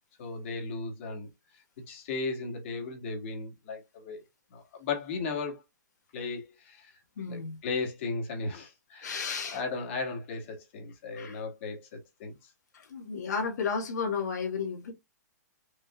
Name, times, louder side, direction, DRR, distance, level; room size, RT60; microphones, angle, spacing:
voice 1, 0.2-1.3 1.9-4.2 4.5-5.6 6.1-6.9 7.3-9.2 9.5-12.5, left 4 dB, 45° left, 1.9 m, -36 dB
voice 2, 7.2-7.6 9.0-9.6 11.1-11.4 12.7-14.9, left 5 dB, 70° left, 1.8 m, -33 dB
5.2 x 3.1 x 2.4 m
hypercardioid pair, 160°, 9 cm